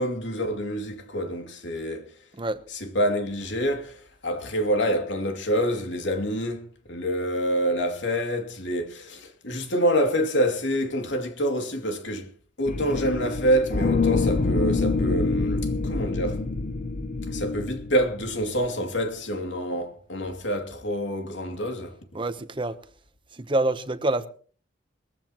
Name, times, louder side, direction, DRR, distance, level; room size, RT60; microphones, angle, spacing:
voice 1, 0.0-2.1 2.7-12.3 12.6-16.4 17.3-22.0, equal, 80° left, 2.6 m, -27 dB
sound 1, 12.7-18.7, left 3 dB, 45° left, 0.7 m, -26 dB
voice 2, 22.1-22.8 23.3-24.3, right 2 dB, 30° right, 0.9 m, -26 dB
21.5 x 15.0 x 3.0 m
head